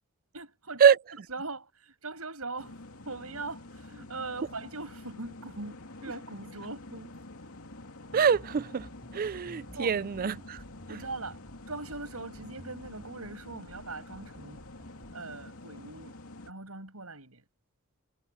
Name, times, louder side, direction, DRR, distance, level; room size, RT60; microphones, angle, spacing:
voice 1, 0.3-2.8 3.0-7.1 9.8-10.0 10.9-11.4 11.7-16.1 16.5-17.4, right 3 dB, 85° right, 6.7 m, -41 dB
sound 1, 2.6-16.5, left 2 dB, 85° left, 2.7 m, -48 dB
sound 2, 8.1-15.1, equal, 15° left, 5.6 m, -53 dB
voice 2, 8.1-8.9 9.1-10.6, right 7 dB, 40° right, 0.4 m, -24 dB
head